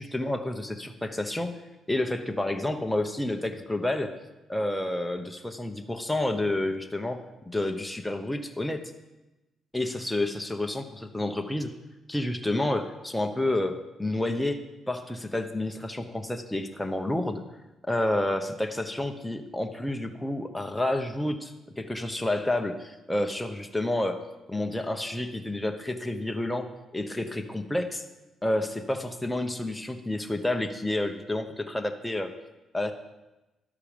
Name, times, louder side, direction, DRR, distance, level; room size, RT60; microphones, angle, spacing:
voice 1, 0.0-1.6 1.9-4.2 4.5-8.8 9.7-11.7 12.1-14.6 14.9-17.4 17.8-24.2 24.5-28.0 28.4-32.3 32.7-32.9, left 1 dB, 5° left, 5 dB, 0.9 m, -29 dB
12.0 x 8.4 x 5.1 m, 1.0 s
cardioid pair, 90°, 0 cm